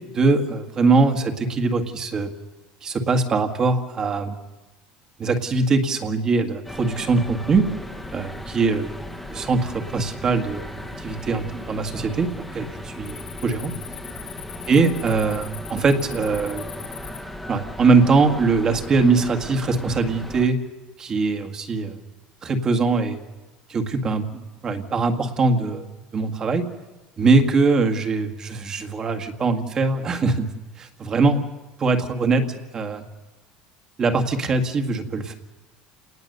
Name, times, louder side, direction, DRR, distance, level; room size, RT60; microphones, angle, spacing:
voice 1, 0.1-2.3 2.8-4.4 5.2-7.7 8.1-9.0 9.3-10.7 11.0-13.7 14.7-16.6 17.5-20.6 21.0-22.0 22.4-23.2 23.7-25.9 26.1-26.6 27.2-30.5 30.8-31.5 31.8-32.4 32.7-33.0 34.0-35.3, right 3 dB, 25° right, 6 dB, 1.8 m, -22 dB
sound 1, 6.6-20.5, left 1 dB, 5° left, 1.4 m, -36 dB
Cricket, 8.2-8.7 9.1-9.5 10.1-10.2 10.9-11.5 11.7-12.0 12.3-17.2, left 12 dB, 55° left, 2.6 m, -42 dB
30.0 x 19.0 x 6.8 m, 1.1 s
cardioid pair, 165°, 3 cm